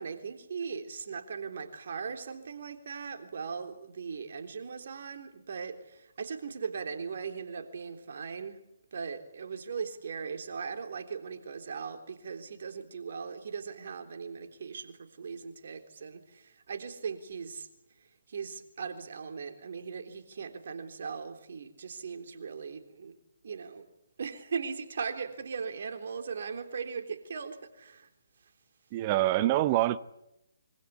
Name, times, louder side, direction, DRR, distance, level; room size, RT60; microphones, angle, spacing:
voice 1, 0.0-8.6 8.9-17.7 18.3-23.1 23.4-23.9 24.2-28.1, right 5 dB, 55° right, 3.5 m, -39 dB
voice 2, 28.9-30.0, right 15 dB, 30° right, 1.0 m, -25 dB
26.0 x 25.0 x 8.5 m
figure-of-eight pair, 140°, 0 cm